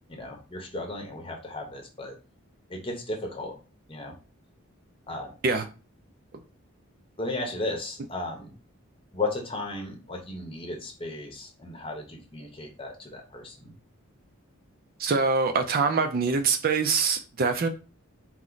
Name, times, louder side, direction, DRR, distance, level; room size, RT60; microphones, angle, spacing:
voice 1, 0.1-2.2 2.7-3.6 3.9-4.2 5.1-5.3 7.2-8.5 9.1-13.7, left 2 dB, 25° left, 2 dB, 0.8 m, -35 dB
voice 2, 15.0-17.7, right 4 dB, 40° right, 7 dB, 0.4 m, -24 dB
4.4 x 2.0 x 3.8 m, 0.33 s
head